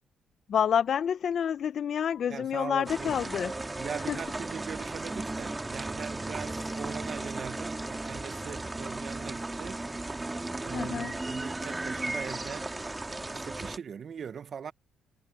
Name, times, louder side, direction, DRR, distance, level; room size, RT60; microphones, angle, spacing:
voice 1, 0.5-3.5 4.1-4.2 10.7-11.2, left 8 dB, 60° left, 0.8 m, -28 dB
voice 2, 2.3-3.2 3.8-9.8 10.6-12.7 13.3-14.7, right 7 dB, 50° right, 0.7 m, -40 dB
sound 1, 2.9-13.8, right 2 dB, 15° right, 2.2 m, -35 dB
cardioid pair, 90°, 0 cm